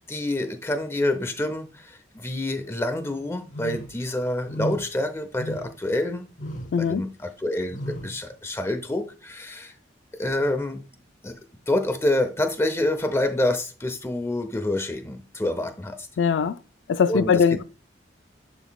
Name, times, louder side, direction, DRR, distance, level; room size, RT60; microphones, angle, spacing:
voice 1, 0.1-6.3 6.8-9.7 10.1-10.8 11.2-11.4 11.7-16.1 17.1-17.6, left 1 dB, 15° left, 0.7 m, -27 dB
sound 1, 3.5-4.0 4.5-4.9 5.4-5.9 6.4-6.8 7.7-8.2, equal, 40° left, 1.0 m, -33 dB
voice 2, 6.7-7.0 16.2-16.6 16.9-17.6, left 6 dB, 80° left, 0.4 m, -21 dB
10.5 x 4.0 x 2.3 m
head